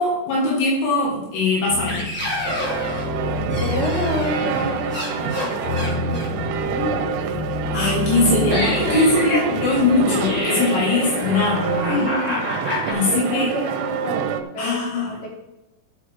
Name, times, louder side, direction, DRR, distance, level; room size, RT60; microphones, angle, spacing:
voice 1, 0.0-2.1 7.7-12.1 12.9-13.5 14.6-15.1, left 3 dB, 70° left, -4 dB, 4.5 m, -21 dB
sound 1, 1.7-12.9, left 2 dB, ahead, 2.9 m, -27 dB
sound 2, 2.5-14.4, right 8 dB, 85° right, 3.4 m, -27 dB
voice 2, 3.6-7.1 8.0-9.3 11.9-12.6 13.0-15.3, equal, 30° left, -6 dB, 4.5 m, -30 dB
15.5 x 7.1 x 3.7 m, 0.98 s
omnidirectional pair, 5.7 m